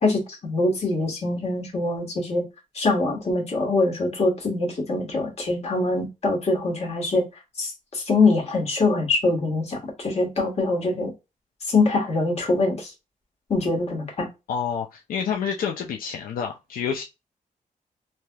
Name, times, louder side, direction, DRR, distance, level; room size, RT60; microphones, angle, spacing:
voice 1, 0.0-2.4 2.7-7.3 7.6-11.1 11.7-12.9 13.5-14.3, left 3 dB, 45° left, 1.3 m, -23 dB
voice 2, 14.5-17.0, left 7 dB, 85° left, 0.4 m, -28 dB
3.1 x 2.8 x 2.2 m
wide cardioid pair, 140°, 14 cm